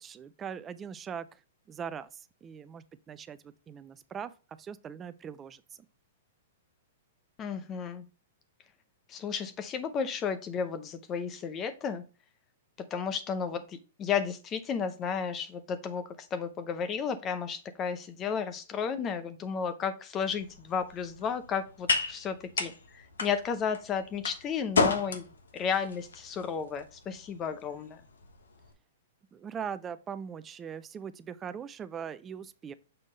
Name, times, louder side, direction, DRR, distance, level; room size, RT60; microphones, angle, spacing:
voice 1, 0.0-1.4 1.7-4.3 4.6-5.6 29.3-32.7, right 7 dB, 20° right, 0.4 m, -41 dB
voice 2, 7.4-8.0 9.1-12.0 12.8-25.3 25.5-28.0, left 6 dB, 30° left, 0.6 m, -33 dB
sound 1, 20.3-28.7, left 4 dB, 80° left, 1.1 m, -34 dB
6.8 x 3.6 x 3.9 m
hypercardioid pair, 115°, 0 cm